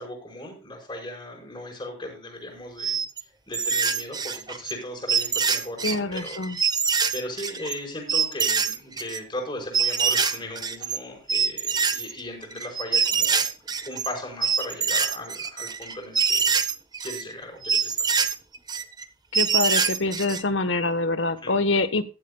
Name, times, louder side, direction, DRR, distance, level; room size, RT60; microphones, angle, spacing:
voice 1, 0.0-6.4 6.8-13.4 13.9-16.5 17.0-18.1 21.4-21.5, left 1 dB, 25° left, 0 dB, 5.1 m, -37 dB
sound 1, 2.8-3.2 3.5-4.7 5.1-7.8 8.1-9.2 9.7-11.0 11.3-14.1 14.4-17.2 17.6-19.0 19.3-20.4, right 6 dB, 20° right, 0.9 m, -24 dB
voice 2, 5.8-6.6 19.3-22.0, left 3 dB, 85° left, 11 dB, 1.3 m, -25 dB
15.0 x 12.5 x 2.3 m, 0.33 s
head